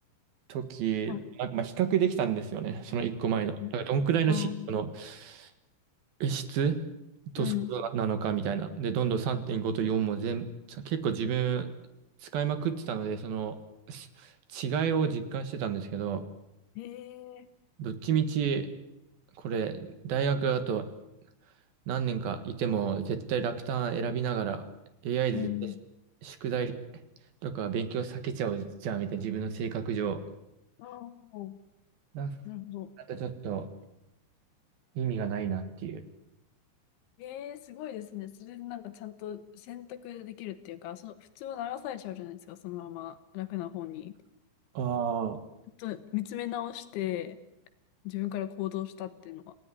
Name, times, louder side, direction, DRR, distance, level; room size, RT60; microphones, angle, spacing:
voice 1, 0.5-5.5 6.2-6.8 7.3-11.7 12.2-13.6 13.9-16.2 17.8-18.7 19.4-20.9 21.9-24.6 25.0-25.5 26.2-26.7 27.4-30.2 32.1-32.3 33.1-33.7 35.0-36.0 44.7-45.4, right 7 dB, 60° right, 10 dB, 2.8 m, -30 dB
voice 2, 4.3-4.7 7.4-7.7 16.8-17.5 25.3-25.8 30.8-31.6 32.5-32.9 37.2-44.2 45.8-47.4 48.1-49.6, left 14 dB, 75° left, 12 dB, 3.3 m, -37 dB
27.5 x 17.5 x 9.9 m, 0.88 s
omnidirectional pair, 5.9 m